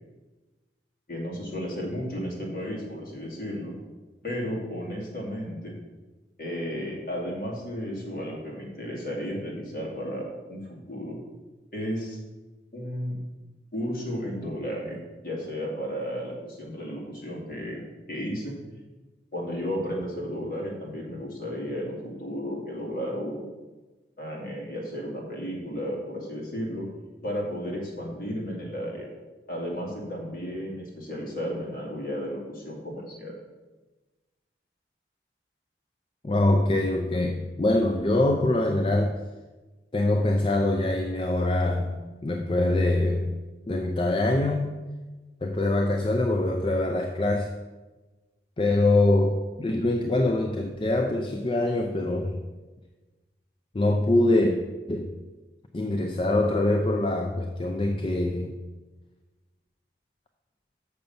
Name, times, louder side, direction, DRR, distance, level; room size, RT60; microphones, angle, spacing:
voice 1, 1.1-3.7 4.2-5.8 6.4-11.2 11.7-12.2 12.7-13.2 13.7-15.0 15.2-17.8 18.1-18.5 19.3-23.5 24.2-26.9 27.2-29.1 29.5-33.3, equal, 50° left, -3 dB, 2.4 m, -33 dB
voice 2, 36.2-39.1 39.9-43.4 43.7-44.8 45.4-47.5 48.6-52.4 53.7-54.6 54.9-55.1 55.7-58.6, left 2 dB, 30° left, 4 dB, 0.4 m, -24 dB
6.7 x 5.3 x 7.0 m, 1.2 s
head